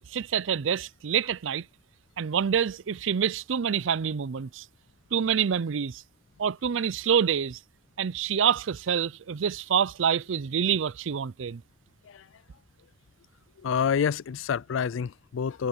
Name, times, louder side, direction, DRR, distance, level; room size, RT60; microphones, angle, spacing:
voice 1, 0.0-1.6 2.2-4.6 5.1-6.0 6.4-7.6 8.0-11.6, right 7 dB, 70° right, 0.5 m, -27 dB
voice 2, 13.6-15.7, left 7 dB, 75° left, 0.4 m, -28 dB
head